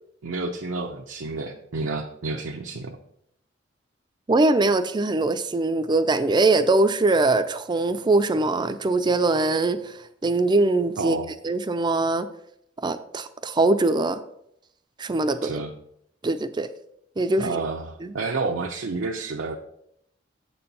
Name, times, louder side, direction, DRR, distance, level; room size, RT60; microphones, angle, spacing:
voice 1, 0.2-3.0 11.0-11.3 15.4-15.7 17.4-19.6, right 3 dB, 85° right, 1 dB, 0.6 m, -30 dB
voice 2, 4.3-9.9 10.2-11.2 11.4-12.3 12.8-14.2 15.0-15.5 16.2-16.7 17.2-17.6 18.0-18.1, right 2 dB, 25° right, 11 dB, 0.4 m, -22 dB
7.6 x 4.3 x 5.4 m, 0.74 s
head